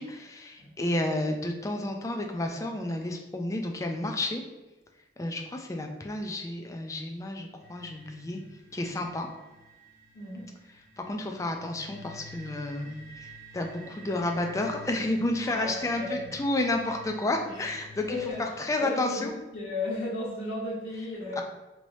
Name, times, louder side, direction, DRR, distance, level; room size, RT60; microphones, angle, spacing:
voice 1, 0.0-4.4 5.2-8.4 8.7-9.3 11.0-19.3 21.4-21.5, left 2 dB, 15° left, 3 dB, 0.3 m, -31 dB
sound 1, 7.6-18.3, equal, 15° right, 1.3 m, -50 dB
voice 2, 10.1-10.5 15.4-16.3 17.5-17.7 18.1-18.4 18.8-21.4, left 2 dB, 75° left, -13 dB, 1.4 m, -34 dB
3.2 x 3.0 x 2.6 m, 1.1 s
head